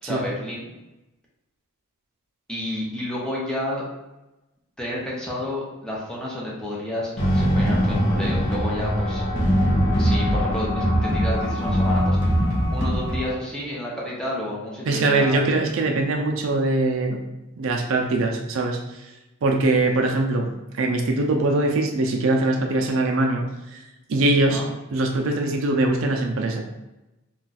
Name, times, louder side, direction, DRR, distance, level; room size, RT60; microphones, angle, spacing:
voice 1, 0.0-0.7 2.5-3.8 4.8-9.2 10.0-12.2 12.7-15.4 24.5-24.6, left 1 dB, 5° left, -6 dB, 0.7 m, -30 dB
sound 1, 7.2-13.3, equal, 60° left, 0.8 m, -21 dB
voice 2, 14.9-17.2 17.6-19.0 19.4-23.8 24.1-24.6 24.9-26.6, right 2 dB, 70° right, 2 dB, 0.4 m, -22 dB
2.3 x 2.3 x 4.0 m, 1.0 s
head